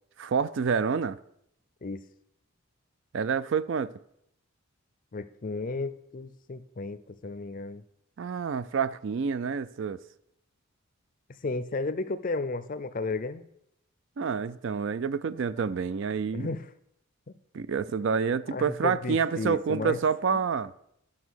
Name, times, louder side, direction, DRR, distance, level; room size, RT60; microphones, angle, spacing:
voice 1, 0.2-1.2 3.1-3.9 8.2-10.0 14.2-16.5 17.5-20.7, right 6 dB, 60° right, 0.4 m, -28 dB
voice 2, 5.1-7.8 11.4-13.4 16.3-16.7 17.3-17.4 18.5-20.0, left 3 dB, 40° left, 0.5 m, -33 dB
11.5 x 5.9 x 6.2 m
head